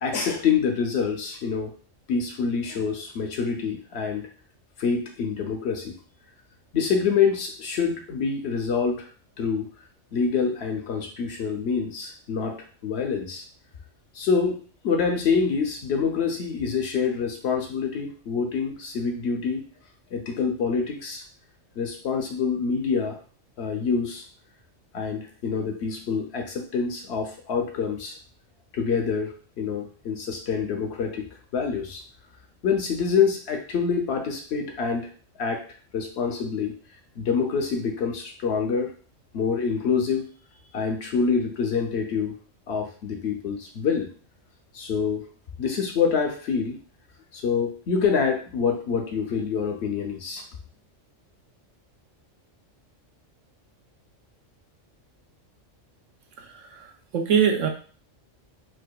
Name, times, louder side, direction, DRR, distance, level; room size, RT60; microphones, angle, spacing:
voice 1, 0.0-1.7 2.1-4.2 4.8-6.0 6.7-9.1 9.4-9.7 10.1-13.4 14.1-19.7 20.1-21.2 21.8-23.2 23.6-24.2 24.9-28.2 28.7-31.3 31.5-32.0 32.6-35.1 35.4-35.6 35.9-36.7 37.2-38.9 39.3-40.3 40.7-42.3 42.7-44.1 44.7-45.2 45.6-46.8 47.3-50.4, left 5 dB, 65° left, 3 dB, 0.8 m, -26 dB
voice 2, 56.4-57.7, right 7 dB, 80° right, 4 dB, 0.9 m, -24 dB
4.5 x 2.3 x 2.2 m, 0.40 s
omnidirectional pair, 1.3 m